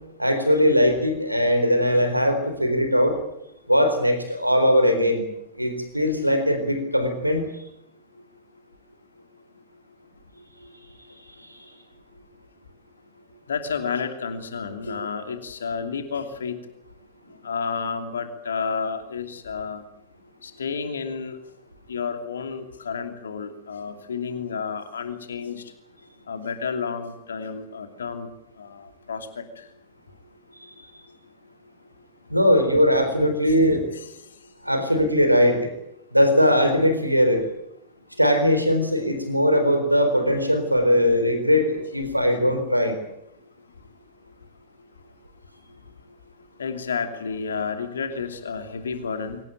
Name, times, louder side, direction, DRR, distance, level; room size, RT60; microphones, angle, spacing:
voice 1, 0.2-3.2 3.7-5.2 5.6-7.4 32.3-33.8 34.6-35.7 36.1-37.4 38.2-42.9, equal, 90° right, 7 dB, 4.1 m, -20 dB
voice 2, 13.5-16.6 17.4-19.8 20.4-21.4 21.9-25.7 26.3-28.3 28.6-29.6 33.9-34.1 42.3-42.4 46.6-49.4, left 5 dB, 70° left, 7 dB, 2.8 m, -31 dB
23.5 x 18.5 x 9.0 m, 0.79 s
figure-of-eight pair, 90°, 0 cm